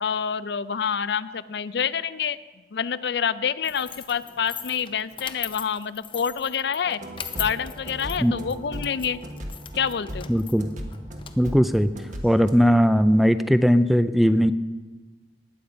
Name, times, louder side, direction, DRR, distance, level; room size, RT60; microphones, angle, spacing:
voice 1, 0.0-2.4 2.7-7.0 7.4-9.2 9.7-10.3, left 7 dB, 65° left, 15 dB, 0.4 m, -27 dB
sound 1, 3.6-12.5, left 8 dB, 30° left, 0.7 m, -40 dB
sound 2, 6.8-12.5, equal, 45° right, 1.5 m, -37 dB
voice 2, 10.3-10.7 11.4-11.9 12.2-14.5, equal, ahead, 12 dB, 0.4 m, -19 dB
19.5 x 8.6 x 5.2 m, 1.3 s
head